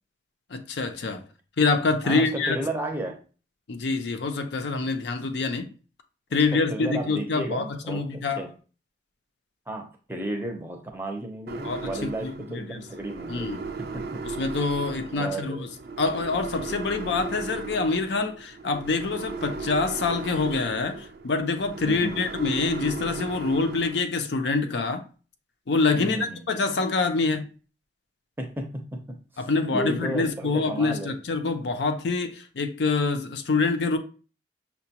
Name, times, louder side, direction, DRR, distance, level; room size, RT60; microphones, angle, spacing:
voice 1, 0.5-1.2 1.6-2.6 3.7-5.7 6.3-8.4 11.6-11.9 12.2-12.8 13.3-13.6 14.4-15.7 16.0-25.0 25.7-27.5 29.4-34.0, left 3 dB, 85° left, 0.5 m, -26 dB
voice 2, 2.0-3.2 6.5-8.5 9.7-13.5 13.8-14.3 15.1-15.7 21.8-22.3 25.9-26.5 28.4-31.1, right 1 dB, 10° right, 0.6 m, -33 dB
sound 1, 11.5-24.0, right 4 dB, 60° right, 0.4 m, -36 dB
5.7 x 2.2 x 2.8 m
head